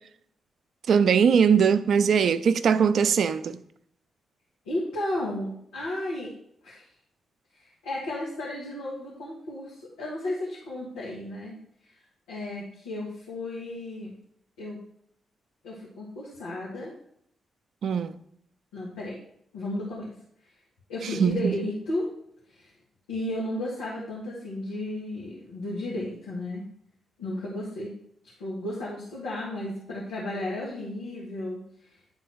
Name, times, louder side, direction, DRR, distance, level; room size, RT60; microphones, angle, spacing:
voice 1, 0.9-3.6 17.8-18.2 21.0-21.5, right 7 dB, 65° right, 0.5 m, -21 dB
voice 2, 4.7-6.3 6.6-6.8 7.6-11.6 12.3-14.1 14.6-14.8 15.6-16.9 18.7-19.2 19.5-20.1 20.9-22.1 22.5-22.7 23.1-26.6 27.2-27.9 28.4-31.6, left 1 dB, 85° left, 2.1 m, -33 dB
10.5 x 3.9 x 4.7 m
hypercardioid pair, 40°, 0 cm